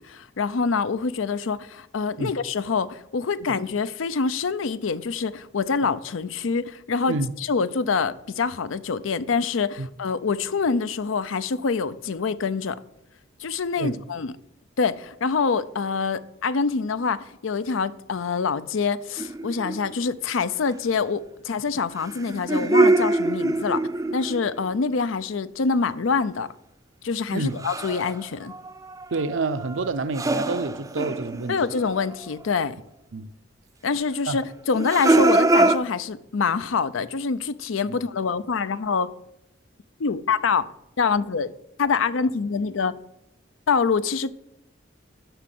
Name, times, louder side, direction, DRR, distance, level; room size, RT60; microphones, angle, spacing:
voice 1, 0.0-12.8 13.4-14.3 14.8-23.8 24.1-26.5 27.0-28.5 31.5-32.8 33.8-39.1 40.0-40.7 41.0-41.5 41.8-42.9 43.7-44.3, left 5 dB, 90° left, 0.5 m, -25 dB
sound 1, 19.2-19.9 22.0-24.6 27.6-28.2 28.5-32.1 32.6-32.7 34.7-35.8, right 2 dB, 15° right, 0.4 m, -23 dB
voice 2, 29.1-31.6 33.1-33.3 34.3-34.4 37.9-38.0, right 3 dB, 80° right, 0.6 m, -28 dB
8.0 x 6.1 x 7.7 m
head